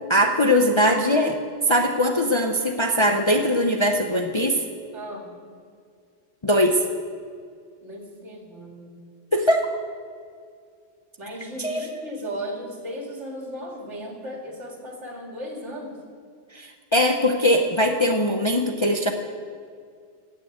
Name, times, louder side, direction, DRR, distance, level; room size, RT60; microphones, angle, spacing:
voice 1, 0.1-1.4 1.7-4.6 6.4-6.8 9.3-9.7 11.6-12.0 16.5-19.1, equal, 30° left, 3 dB, 0.6 m, -21 dB
voice 2, 4.9-5.3 7.8-8.9 11.2-16.0, equal, 70° right, 0 dB, 2.6 m, -36 dB
16.5 x 6.6 x 8.0 m, 2.2 s
omnidirectional pair, 1.3 m